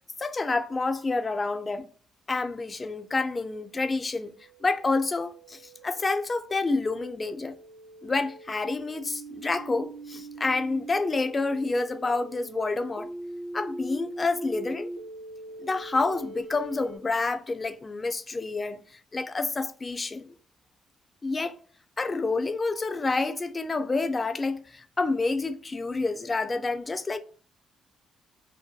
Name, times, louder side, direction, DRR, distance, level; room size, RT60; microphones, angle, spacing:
voice 1, 0.2-1.9 2.3-4.3 4.6-7.5 8.0-13.1 13.5-14.9 15.6-20.3 21.2-21.6 22.0-27.2, left 3 dB, 30° left, 0.3 m, -28 dB
sound 1, 3.7-17.0, right 1 dB, 75° right, 0.4 m, -42 dB
2.6 x 2.2 x 2.3 m
cardioid pair, 90°, 0 cm